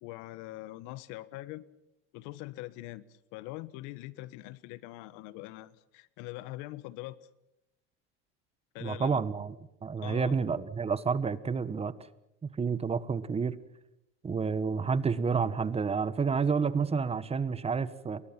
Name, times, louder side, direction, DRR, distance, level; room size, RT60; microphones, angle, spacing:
voice 1, 0.0-1.6 2.1-3.0 3.3-7.2 8.7-9.2 10.0-10.4, left 17 dB, 65° left, 1.4 m, -42 dB
voice 2, 8.8-9.5 9.8-11.9 12.6-13.5 14.2-18.2, right 5 dB, 20° right, 1.3 m, -29 dB
29.0 x 23.0 x 5.9 m
supercardioid pair, 125°, 32 cm